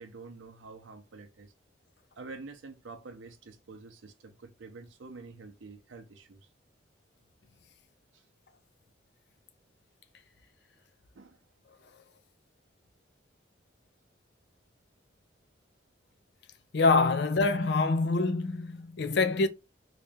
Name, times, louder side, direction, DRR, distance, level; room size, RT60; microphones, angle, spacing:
voice 1, 0.0-1.5 2.2-6.5 8.1-8.3 11.1-11.4, right 3 dB, 80° right, 0.6 m, -47 dB
voice 2, 16.7-19.5, left 3 dB, 60° left, 0.5 m, -25 dB
2.9 x 2.7 x 3.4 m
head